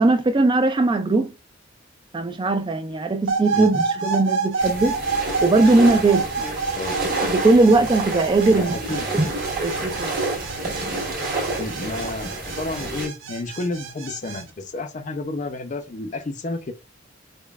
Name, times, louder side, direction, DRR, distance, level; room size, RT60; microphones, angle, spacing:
voice 1, 0.0-1.3 2.1-5.0 5.4-6.6 7.3-8.8 9.6-10.1, right 3 dB, 25° right, 0.3 m, -19 dB
sound 1, 3.3-14.4, right 4 dB, 85° right, 0.6 m, -29 dB
sound 2, 4.6-13.1, right 2 dB, 50° right, 1.6 m, -28 dB
voice 2, 8.5-9.1 11.6-16.7, left 2 dB, 40° left, 0.5 m, -31 dB
5.1 x 2.1 x 2.3 m
head